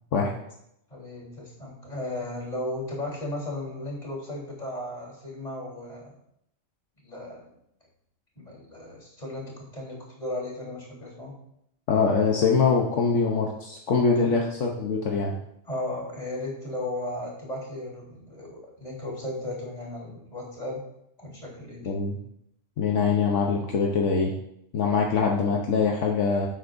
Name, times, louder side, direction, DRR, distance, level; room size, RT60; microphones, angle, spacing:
voice 1, 0.9-6.1 7.0-7.5 8.4-11.3 14.2-14.3 15.6-20.8 21.2-21.8, left 1 dB, 35° left, -5 dB, 3.7 m, -35 dB
voice 2, 11.9-15.3 21.8-22.2 22.8-24.3 24.7-26.5, left 5 dB, 75° left, 0 dB, 1.3 m, -23 dB
12.0 x 8.2 x 2.6 m, 0.76 s
omnidirectional pair, 1.3 m